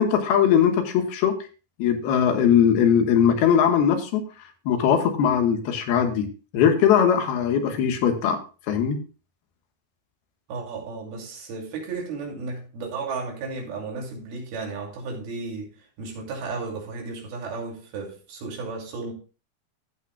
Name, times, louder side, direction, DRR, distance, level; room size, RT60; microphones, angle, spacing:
voice 1, 0.0-1.4 1.8-4.2 4.7-6.3 6.5-8.4 8.7-9.0, left 8 dB, 85° left, 3.2 m, -20 dB
voice 2, 10.5-15.7 16.0-19.1, right 4 dB, 75° right, 4.4 m, -34 dB
15.0 x 8.7 x 2.2 m
omnidirectional pair, 4.4 m